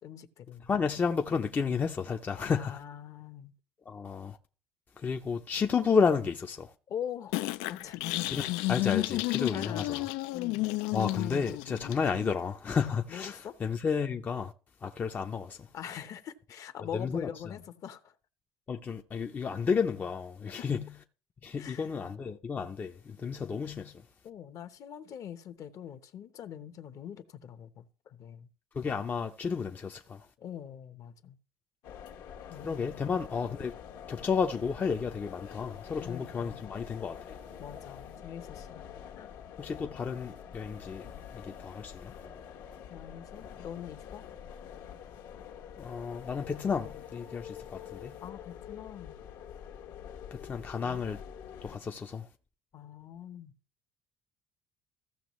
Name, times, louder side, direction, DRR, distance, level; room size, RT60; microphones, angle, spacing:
voice 1, 0.0-0.7 2.4-3.5 6.9-7.4 7.6-8.0 9.5-10.0 10.3-10.7 13.1-13.5 15.7-18.1 20.5-20.7 21.6-21.9 24.2-28.5 30.4-31.4 32.5-33.0 36.0-36.7 37.6-38.9 39.1-39.3 42.9-44.2 48.2-49.2 52.7-53.5, left 9 dB, 50° left, 0.9 m, -43 dB
voice 2, 0.7-2.8 3.9-4.4 5.0-6.7 8.3-10.0 10.9-14.5 14.8-15.7 16.9-17.3 18.7-20.9 21.4-24.0 28.7-30.3 32.6-33.7 34.1-37.4 39.6-42.1 45.8-48.2 50.3-51.2 51.6-52.3, left 5 dB, 25° left, 0.5 m, -32 dB
sound 1, 7.3-12.3, left 19 dB, 85° left, 0.4 m, -32 dB
sound 2, 31.8-51.8, left 8 dB, 65° left, 1.2 m, -46 dB
15.0 x 6.2 x 3.1 m
cardioid pair, 130°, 7 cm